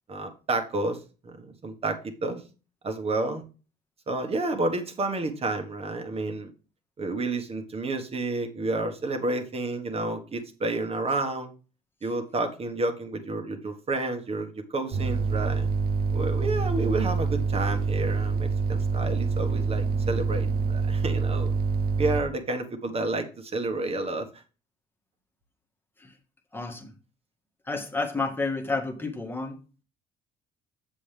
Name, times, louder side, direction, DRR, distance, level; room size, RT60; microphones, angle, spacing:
voice 1, 0.1-1.0 1.2-2.4 2.8-3.4 4.1-6.5 7.0-11.5 12.0-15.7 16.1-21.5 22.0-24.3, right 2 dB, 35° right, 1.6 m, -30 dB
sound 1, 14.9-22.2, right 4 dB, 65° right, 0.9 m, -26 dB
voice 2, 26.5-26.9 27.7-29.6, left 3 dB, 10° left, 1.6 m, -30 dB
7.6 x 7.5 x 3.4 m
cardioid pair, 110°, 17 cm